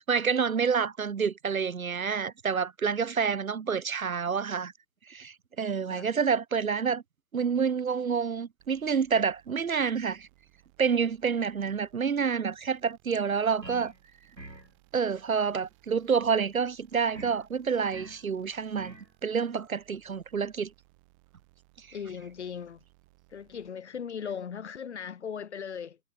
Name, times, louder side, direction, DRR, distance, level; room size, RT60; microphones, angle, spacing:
voice 1, 0.0-4.7 5.1-7.0 7.3-10.3 10.8-13.9 14.9-18.9 19.2-20.7, right 6 dB, 55° right, 0.9 m, -28 dB
sound 1, 8.6-23.7, right 27 dB, 20° right, 4.7 m, -64 dB
sound 2, 13.6-14.0 14.4-14.7 17.1-17.4 17.9-18.2 18.8-19.1, right 2 dB, 85° right, 6.0 m, -45 dB
voice 2, 21.9-22.8 23.3-26.0, left 7 dB, 40° left, 1.9 m, -38 dB
figure-of-eight pair, 140°, 50 cm